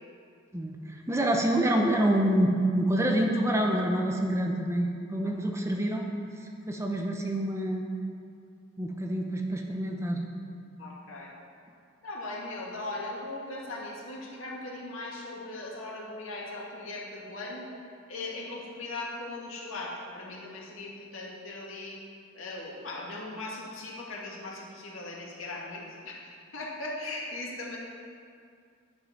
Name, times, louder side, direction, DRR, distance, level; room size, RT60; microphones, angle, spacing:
voice 1, 0.5-6.0 6.4-7.8 8.8-10.2, right 1 dB, 15° right, 1 dB, 0.8 m, -27 dB
voice 2, 10.8-11.3 12.0-22.0 22.3-27.8, left 2 dB, 80° left, -3 dB, 2.1 m, -39 dB
9.5 x 7.8 x 6.0 m, 2.3 s
head